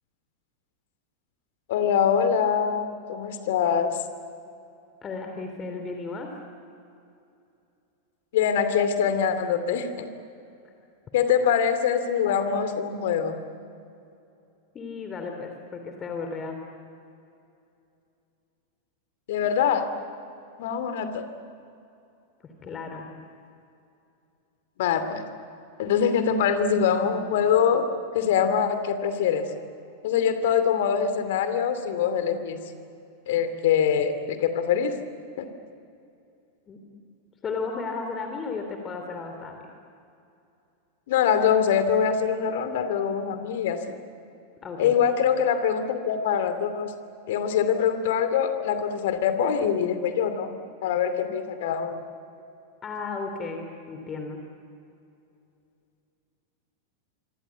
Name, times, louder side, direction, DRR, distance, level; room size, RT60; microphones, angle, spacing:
voice 1, 1.7-4.0 8.3-10.1 11.1-13.5 19.3-19.9 20.6-21.2 24.8-25.3 25.8-27.9 28.1-29.5 30.0-32.6 33.3-34.9 35.4-35.5 41.1-44.0 44.8-46.9 47.3-50.5 50.8-52.0, left 7 dB, 55° left, 9 dB, 2.6 m, -24 dB
voice 2, 5.0-6.3 14.7-16.6 22.4-23.1 36.7-36.8 37.4-39.6 44.6-44.9 52.8-54.4, left 4 dB, 25° left, 4 dB, 3.2 m, -34 dB
26.0 x 25.5 x 8.3 m, 2.6 s
figure-of-eight pair, 90°, 0 cm